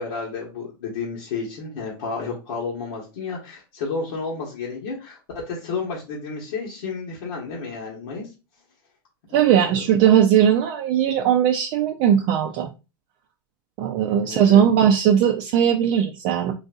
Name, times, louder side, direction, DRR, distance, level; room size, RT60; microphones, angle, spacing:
voice 1, 0.0-8.3 9.3-9.7 14.1-14.6, left 4 dB, 70° left, -5 dB, 1.2 m, -31 dB
voice 2, 9.3-12.7 13.8-16.5, right 9 dB, 45° right, 4 dB, 0.4 m, -18 dB
3.8 x 2.6 x 2.4 m, 0.29 s
hypercardioid pair, 110°, 12 cm